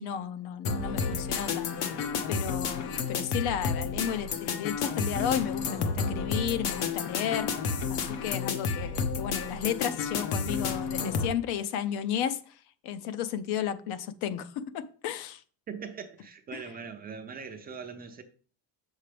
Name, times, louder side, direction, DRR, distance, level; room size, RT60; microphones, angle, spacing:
voice 1, 0.0-1.9 2.3-12.4 12.8-15.4, left 9 dB, 60° left, 0.7 m, -33 dB
sound 1, 0.6-11.3, left 5 dB, 80° left, 1.1 m, -31 dB
voice 2, 15.7-18.2, right 6 dB, 25° right, 0.4 m, -41 dB
7.5 x 6.5 x 3.3 m
cardioid pair, 175°, 43 cm